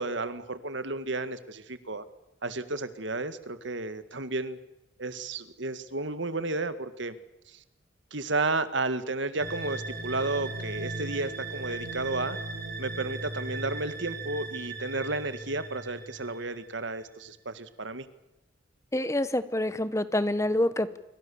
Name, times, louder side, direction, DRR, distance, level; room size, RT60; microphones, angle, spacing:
voice 1, 0.0-2.1 2.4-4.6 5.0-7.2 7.5-7.6 8.1-12.4 12.8-18.1, right 2 dB, 65° right, 12 dB, 1.8 m, -32 dB
sound 1, 9.4-16.9, right 2 dB, 50° right, 5.6 m, -38 dB
voice 2, 18.9-21.0, left 1 dB, 15° left, 14 dB, 1.1 m, -27 dB
27.0 x 24.5 x 7.1 m, 0.92 s
head